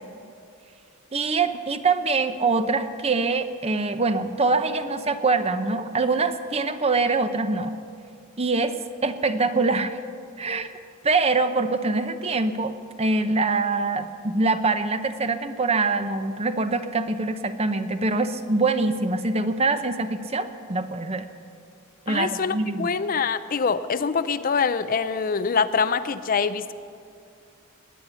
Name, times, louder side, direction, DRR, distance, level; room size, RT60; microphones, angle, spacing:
voice 1, 1.1-7.8 8.4-10.0 10.4-10.7 11.0-21.3 22.1-22.9, right 3 dB, 30° right, 10 dB, 0.7 m, -24 dB
voice 2, 22.1-26.7, left 5 dB, 40° left, 13 dB, 0.4 m, -24 dB
20.0 x 9.7 x 7.0 m, 2.5 s
head